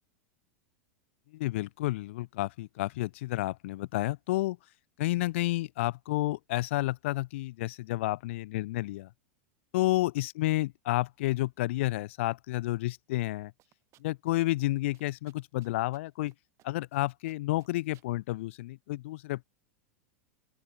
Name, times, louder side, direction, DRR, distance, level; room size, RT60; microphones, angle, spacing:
voice 1, 1.3-4.6 5.0-9.1 9.7-13.5 14.0-16.3 16.6-19.4, left 18 dB, 60° left, 0.3 m, -30 dB
sound 1, 13.6-14.3 14.6-14.7 14.9-16.3 16.6-17.0 17.3-18.1, right 16 dB, 40° right, 3.8 m, -63 dB
open air
figure-of-eight pair, 90°, 8 cm